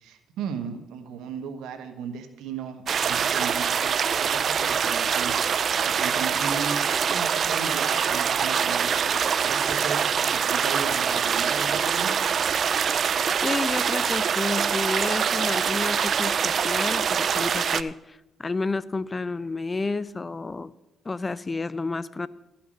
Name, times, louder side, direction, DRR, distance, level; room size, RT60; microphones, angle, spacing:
voice 1, 0.0-5.3 5.8-12.1, right 6 dB, 85° right, 7 dB, 1.3 m, -36 dB
sound 1, 2.9-17.8, right 7 dB, 55° right, 0.4 m, -24 dB
voice 2, 13.4-20.7 21.1-22.3, left 3 dB, 25° left, 18 dB, 0.4 m, -30 dB
13.0 x 5.9 x 7.3 m, 0.94 s
cardioid pair, 90°, 0 cm